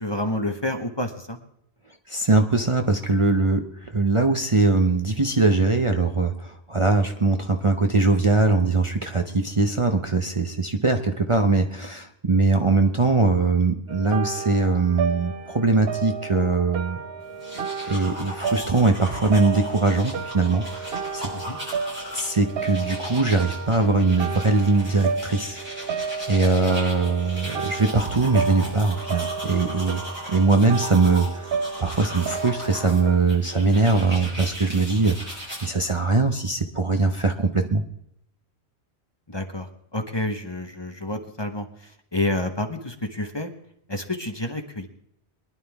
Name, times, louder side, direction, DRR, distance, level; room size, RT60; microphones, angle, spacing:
voice 1, 0.0-1.4 21.3-21.6 39.3-41.7 42.1-43.5 43.9-44.9, left 1 dB, 25° left, 5 dB, 1.1 m, -29 dB
voice 2, 2.1-17.0 17.9-21.3 22.1-25.6 26.3-30.0 30.3-31.5 31.8-37.8, right 3 dB, 30° right, 4 dB, 0.8 m, -21 dB
sound 1, 13.9-33.2, right 5 dB, 65° right, 0.9 m, -32 dB
sound 2, 17.3-35.7, equal, 10° right, 6.3 m, -38 dB
23.5 x 11.0 x 3.5 m, 0.75 s
omnidirectional pair, 1.1 m